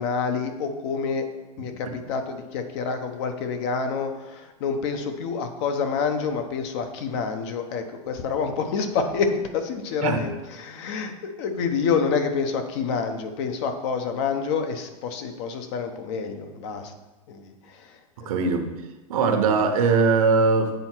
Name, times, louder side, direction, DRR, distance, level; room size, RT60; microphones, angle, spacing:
voice 1, 0.0-16.9 17.3-18.3, left 5 dB, 50° left, 6 dB, 0.9 m, -28 dB
voice 2, 18.3-18.7 19.1-20.7, right 4 dB, 70° right, 5 dB, 1.1 m, -20 dB
7.9 x 4.3 x 4.5 m, 1.1 s
supercardioid pair, 145°, 19 cm